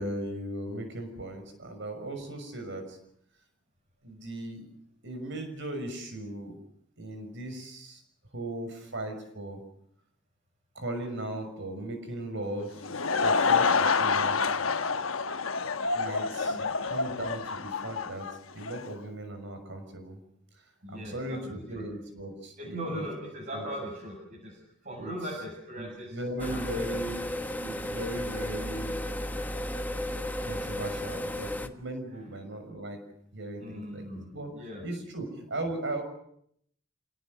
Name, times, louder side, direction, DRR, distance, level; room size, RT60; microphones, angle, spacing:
voice 1, 0.0-3.0 4.0-4.6 5.0-6.6 7.0-8.0 8.3-9.6 10.7-12.8 13.2-14.5 15.9-18.3 18.5-20.2 20.9-23.1 23.5-23.6 25.0-25.1 25.8-27.2 27.6-29.0 30.4-33.0 33.3-34.5 34.8-36.0, right 1 dB, 60° right, 7 dB, 6.2 m, -37 dB
Laughter / Crowd, 12.6-18.9, left 4 dB, 70° left, 1.1 m, -27 dB
voice 2, 20.8-21.9 22.6-26.8 33.6-34.8, equal, 40° right, -2 dB, 7.2 m, -39 dB
sound 1, 26.4-31.7, left 1 dB, 10° left, 1.4 m, -34 dB
27.5 x 18.0 x 8.0 m, 0.70 s
head